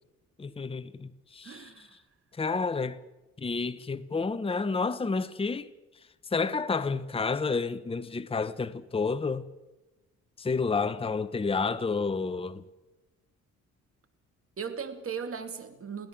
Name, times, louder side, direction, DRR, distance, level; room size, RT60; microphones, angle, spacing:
voice 1, 0.4-1.9 2.3-3.0 3.4-5.7 6.3-9.5 10.4-12.6, left 4 dB, 20° left, 1.0 m, -30 dB
voice 2, 1.4-2.0 14.6-16.1, right 6 dB, 45° right, 2.6 m, -38 dB
22.5 x 16.5 x 7.5 m
cardioid pair, 90°, 30 cm